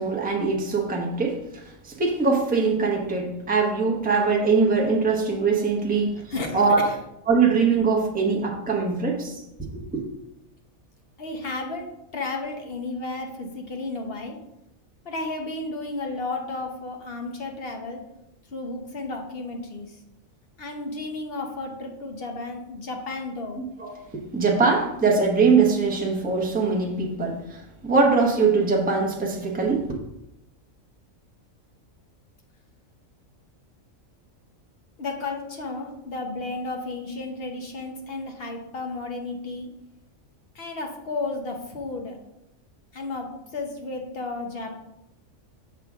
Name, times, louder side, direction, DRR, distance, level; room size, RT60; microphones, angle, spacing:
voice 1, 0.0-6.2 6.5-6.8 7.3-10.0 23.8-30.0, right 4 dB, 10° right, 0 dB, 0.8 m, -22 dB
voice 2, 6.1-7.0 11.2-14.4 15.0-18.0 18.5-20.0 20.6-23.6 35.0-39.7 40.5-42.2 42.9-44.7, left 3 dB, 50° left, 2 dB, 1.2 m, -33 dB
6.7 x 6.0 x 3.6 m, 0.87 s
omnidirectional pair, 1.4 m